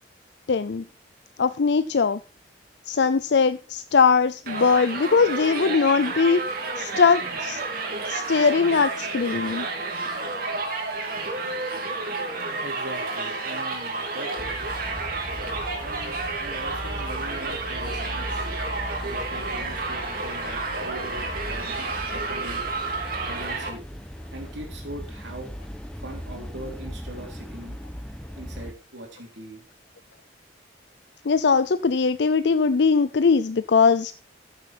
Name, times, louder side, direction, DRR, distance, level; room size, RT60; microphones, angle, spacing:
voice 1, 0.5-0.8 1.4-2.2 2.9-7.6 8.1-9.7 31.3-34.2, left 5 dB, 65° left, 13 dB, 0.5 m, -21 dB
Crowd, 4.5-23.7, right 3 dB, 50° right, 2.8 m, -31 dB
voice 2, 12.6-14.3 15.8-18.5 19.0-22.7 23.2-23.8 24.3-25.5 25.9-27.8 28.3-29.6, right 1 dB, 70° right, 2 dB, 3.2 m, -41 dB
sound 1, 14.4-28.7, equal, 5° left, 1.0 m, -38 dB
14.0 x 7.4 x 4.4 m, 0.33 s
head